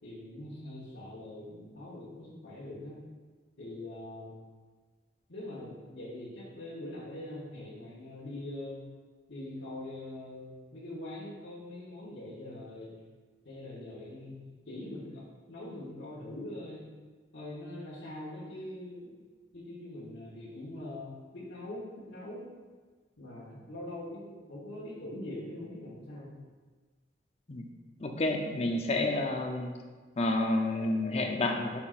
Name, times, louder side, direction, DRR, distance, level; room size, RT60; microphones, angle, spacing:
voice 1, 0.0-3.0 3.6-4.4 5.3-8.9 9.3-12.9 13.4-16.8 17.3-19.1 19.5-22.5 23.2-26.4, left 1 dB, 80° left, -8 dB, 1.4 m, -43 dB
voice 2, 28.0-29.7 30.2-31.8, left 2 dB, 35° left, 3 dB, 0.6 m, -29 dB
9.9 x 5.9 x 2.5 m, 1.4 s
head